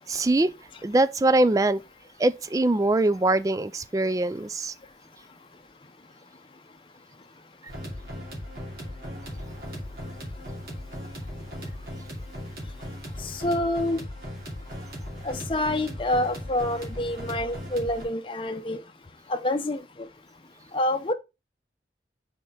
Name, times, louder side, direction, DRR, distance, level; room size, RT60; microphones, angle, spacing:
voice 1, 0.1-0.5 0.8-1.8 2.2-4.7, right 2 dB, 20° right, 0.3 m, -22 dB
sound 1, 7.7-18.0, equal, 60° right, 2.7 m, -38 dB
voice 2, 13.2-14.0 15.2-18.8 19.3-19.8 20.7-21.1, left 1 dB, 30° left, 0.7 m, -27 dB
5.5 x 4.3 x 4.9 m
head